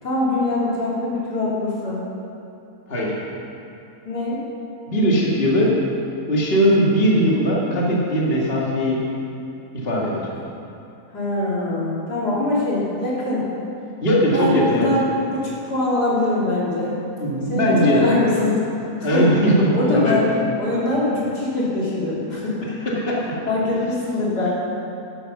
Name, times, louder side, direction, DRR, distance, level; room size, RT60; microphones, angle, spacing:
voice 1, 0.0-2.0 4.1-4.4 11.1-13.5 14.3-17.0 17.5-18.7 19.0-19.4 19.7-20.3 20.6-22.8 23.5-24.5, left 2 dB, 85° left, -7 dB, 3.8 m, -23 dB
voice 2, 4.9-5.8 6.3-9.0 9.7-10.2 14.0-14.9 17.2-18.1 19.0-20.2 22.9-23.2, equal, 35° left, -5 dB, 2.3 m, -19 dB
14.0 x 12.0 x 5.6 m, 2.8 s
omnidirectional pair, 1.7 m